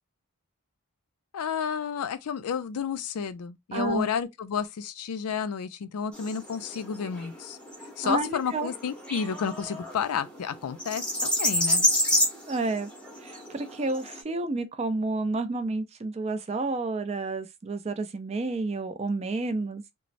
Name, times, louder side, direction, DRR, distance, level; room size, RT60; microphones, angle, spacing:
voice 1, 1.3-7.6 8.0-11.9, left 6 dB, 85° left, 0.4 m, -31 dB
voice 2, 3.7-4.1 8.0-8.7 12.5-12.9 13.2-19.8, right 3 dB, 30° right, 0.4 m, -30 dB
sound 1, 6.1-14.2, left 1 dB, 5° left, 0.7 m, -29 dB
3.0 x 2.0 x 2.5 m
head